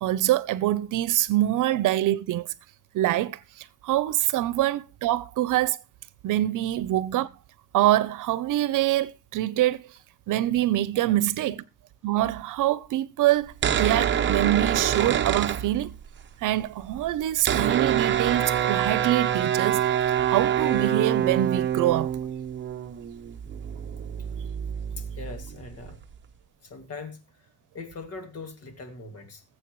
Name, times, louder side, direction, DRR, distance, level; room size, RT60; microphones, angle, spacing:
voice 1, 0.0-2.5 2.9-5.8 6.2-7.3 7.7-9.9 10.3-11.6 12.0-15.9 16.4-19.9 20.3-22.1, right 14 dB, 75° right, 0.8 m, -25 dB
sound 1, 13.5-16.2 16.5-16.6 16.7-26.2, right 9 dB, 35° right, 0.9 m, -26 dB
voice 2, 25.0-26.0 26.6-27.2 27.7-29.4, left 3 dB, 50° left, 2.5 m, -41 dB
20.5 x 7.8 x 3.2 m
cardioid pair, 140°, 32 cm